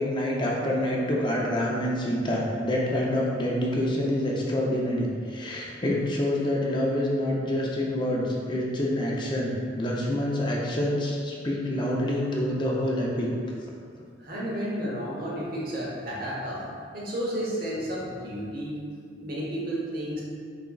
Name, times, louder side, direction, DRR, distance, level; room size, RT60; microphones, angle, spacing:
voice 1, 0.0-13.3, left 1 dB, 25° left, -3 dB, 0.5 m, -27 dB
voice 2, 14.2-18.8 19.2-20.2, equal, 50° right, -5 dB, 0.9 m, -32 dB
4.1 x 3.6 x 2.3 m, 2.2 s
head